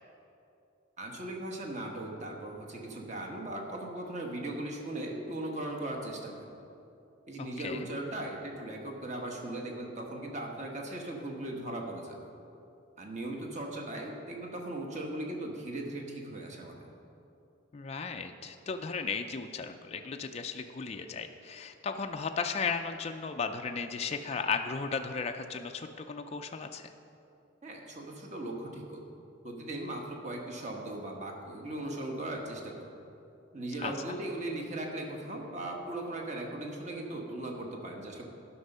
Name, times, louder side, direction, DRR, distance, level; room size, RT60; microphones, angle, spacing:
voice 1, 1.0-6.5 7.3-12.3 13.0-16.8 27.6-29.1 29.4-32.9 33.5-38.2, right 1 dB, 35° right, 1 dB, 1.2 m, -38 dB
voice 2, 7.4-7.9 17.7-26.9 33.8-33.9, left 5 dB, 30° left, 5 dB, 0.3 m, -35 dB
11.5 x 5.9 x 5.5 m, 2.7 s
head